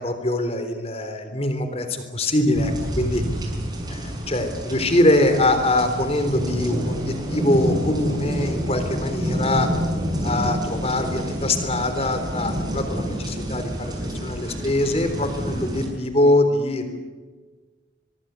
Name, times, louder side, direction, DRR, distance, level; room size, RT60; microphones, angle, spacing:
voice 1, 0.0-3.2 3.9-9.7 10.2-17.0, left 1 dB, 30° left, 8 dB, 3.7 m, -23 dB
sound 1, 2.5-15.9, equal, 20° right, 5.7 m, -28 dB
24.5 x 23.0 x 8.3 m, 1.3 s
head